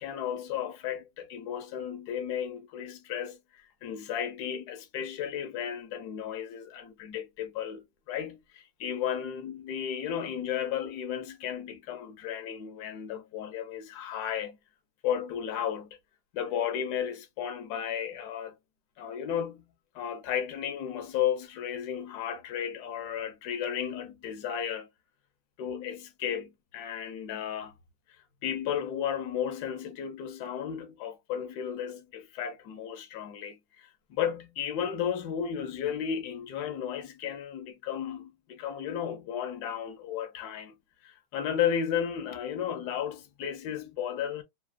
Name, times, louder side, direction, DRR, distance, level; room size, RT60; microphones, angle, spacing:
voice 1, 0.0-14.6 15.0-16.0 16.3-18.5 19.0-19.6 19.9-24.9 25.6-27.7 28.4-40.8 41.0-44.4, left 9 dB, 65° left, 1.1 m, -34 dB
3.3 x 2.3 x 2.3 m
omnidirectional pair, 2.1 m